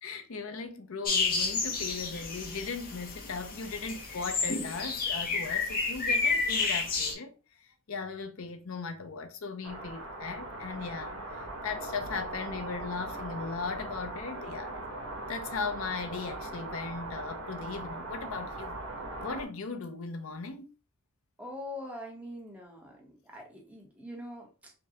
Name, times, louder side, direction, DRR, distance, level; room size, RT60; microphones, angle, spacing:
voice 1, 0.0-14.9 15.3-18.8 19.2-20.7, left 4 dB, 75° left, 0.6 m, -38 dB
sound 1, 1.1-7.1, left 4 dB, 40° left, 0.8 m, -30 dB
sound 2, 9.6-19.4, right 2 dB, 85° right, 1.2 m, -40 dB
voice 2, 21.4-24.7, left 1 dB, 5° right, 1.0 m, -43 dB
5.2 x 2.3 x 2.8 m
head